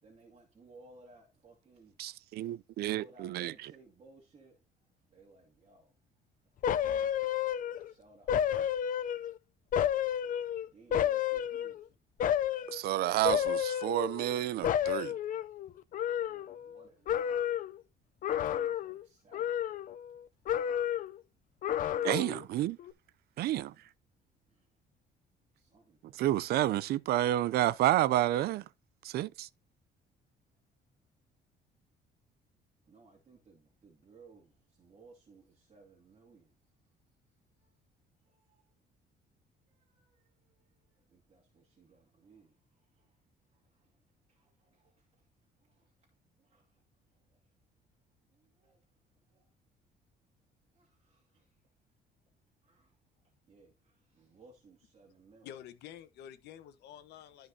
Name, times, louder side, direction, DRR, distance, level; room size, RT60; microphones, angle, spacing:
voice 1, 0.0-2.0 2.9-4.6 5.1-5.9 7.8-8.7 10.7-12.0 16.2-17.4 18.3-19.6 24.5-24.7 25.6-26.3 32.8-36.5 37.6-37.7 38.2-38.7 39.7-43.2 43.5-44.0 44.3-45.2 45.6-46.1 46.4-46.8 47.1-47.4 48.3-48.8 49.3-49.5 50.7-51.6 52.6-53.0 53.2-55.5, right 3 dB, 40° right, 2.5 m, -61 dB
voice 2, 2.0-3.7 12.7-15.2 22.0-22.8 23.4-23.7 26.0-28.6 29.0-29.5, right 14 dB, 70° right, 0.6 m, -30 dB
sound 1, 6.6-7.9 8.3-9.4 9.7-11.8 12.2-12.8 13.2-14.4 14.6-16.8 17.1-17.8 18.2-19.0 19.3-20.2 20.5-21.2 21.6-22.4 22.8-22.9, left 10 dB, 50° left, 0.6 m, -31 dB
voice 3, 55.4-57.5, left 10 dB, 80° left, 1.4 m, -49 dB
13.0 x 5.3 x 2.8 m
cardioid pair, 110°, 17 cm